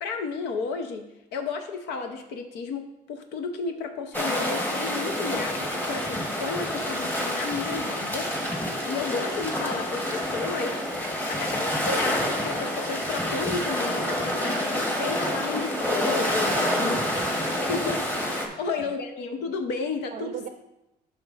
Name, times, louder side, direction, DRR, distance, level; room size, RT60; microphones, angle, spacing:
voice 1, 0.0-8.3 8.8-17.0 17.7-20.5, left 4 dB, 90° left, 6 dB, 0.7 m, -32 dB
sound 1, 4.1-18.5, left 1 dB, 10° left, 1.0 m, -28 dB
voice 2, 16.4-17.6 18.4-18.6 18.8-18.9 20.1-20.5, right 9 dB, 50° right, 7 dB, 0.5 m, -39 dB
8.8 x 6.1 x 2.5 m, 0.91 s
cardioid pair, 110°, 17 cm